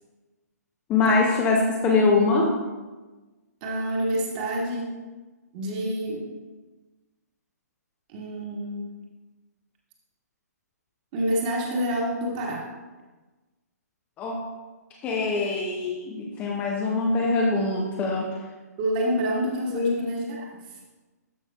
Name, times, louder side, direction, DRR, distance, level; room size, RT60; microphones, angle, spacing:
voice 1, 0.9-2.6 14.2-14.4 15.0-18.3 19.7-19.9, left 3 dB, 15° left, -1 dB, 0.7 m, -23 dB
voice 2, 3.6-5.0 5.5-6.3 8.1-8.9 11.1-12.7 18.8-20.5, right 1 dB, 30° right, -2 dB, 1.5 m, -27 dB
13.0 x 5.7 x 2.3 m, 1.2 s
figure-of-eight pair, 130°, 9 cm